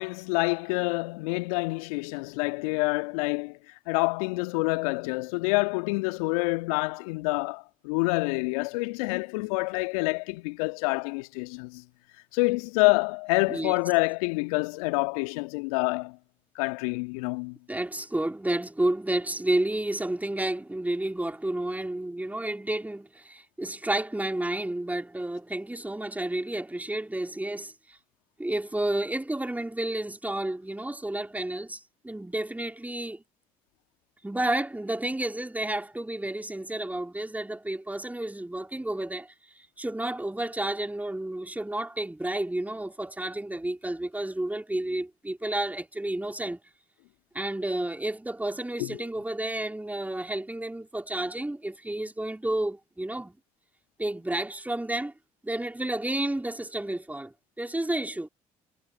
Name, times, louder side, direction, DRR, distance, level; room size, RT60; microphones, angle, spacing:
voice 1, 0.0-11.8 12.3-16.2 16.5-17.6 48.8-49.0, left 28 dB, 75° left, 1.7 m, -27 dB
voice 2, 17.7-28.0 28.4-33.2 34.2-46.6 47.3-53.4 54.0-55.1 55.4-58.3, right 1 dB, 10° right, 3.3 m, -31 dB
figure-of-eight pair, 50°, 18 cm